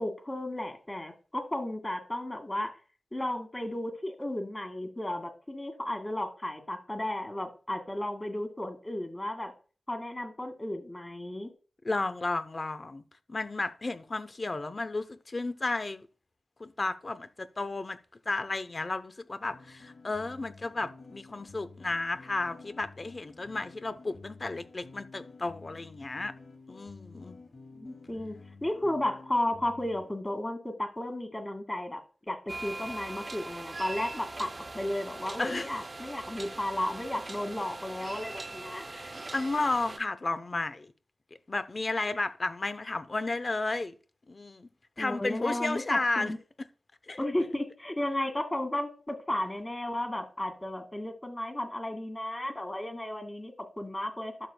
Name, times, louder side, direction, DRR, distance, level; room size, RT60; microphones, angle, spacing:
voice 1, 0.0-2.7 3.1-9.5 9.9-11.5 27.8-28.4 28.6-38.9 45.0-46.4 47.2-54.5, left 1 dB, 20° left, 2.1 m, -34 dB
voice 2, 11.8-13.0 13.3-16.1 16.6-18.0 18.3-26.3 26.7-27.4 35.4-35.7 38.9-40.9 41.5-44.0 44.3-44.7 45.0-46.3 47.1-47.2, left 3 dB, 40° left, 0.7 m, -33 dB
sound 1, 19.5-30.1, left 3 dB, 85° left, 2.3 m, -51 dB
sound 2, 32.5-40.0, right 2 dB, 35° right, 0.5 m, -41 dB
12.0 x 7.0 x 2.2 m
wide cardioid pair, 75°, 0 cm